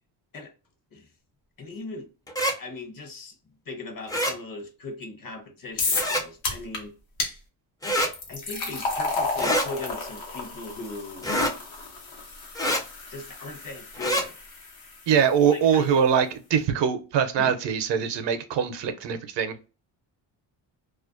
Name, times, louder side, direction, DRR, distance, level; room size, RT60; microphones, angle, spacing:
voice 1, 1.6-2.1 2.6-3.4 3.7-6.9 8.3-11.3 13.1-14.4 15.5-15.9 17.4-17.5, left 3 dB, 45° left, 0.8 m, -39 dB
sound 1, 2.3-2.6 4.1-4.4 5.9-6.2 7.8-8.1 9.4-9.7 11.2-11.5 12.6-12.8 13.9-14.3, equal, 10° left, 0.4 m, -25 dB
sound 2, 5.8-6.2 6.4-6.8 7.2-7.3 8.0-15.1, left 3 dB, 80° left, 1.0 m, -32 dB
voice 2, 15.1-19.6, right 7 dB, 65° right, 0.6 m, -23 dB
2.4 x 2.1 x 2.4 m
cardioid pair, 90°, 47 cm